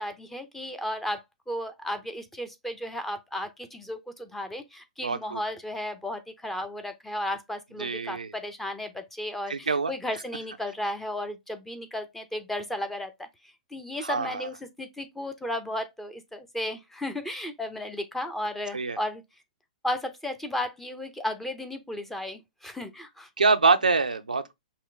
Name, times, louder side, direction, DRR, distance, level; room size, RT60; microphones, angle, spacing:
voice 1, 0.0-19.2 19.8-23.3, left 1 dB, 5° left, 0.7 m, -34 dB
voice 2, 5.0-5.4 7.8-8.3 9.5-9.9 14.0-14.5 18.7-19.0 23.4-24.5, right 4 dB, 90° right, 0.5 m, -25 dB
5.6 x 2.2 x 3.2 m
hypercardioid pair, 115°, 4 cm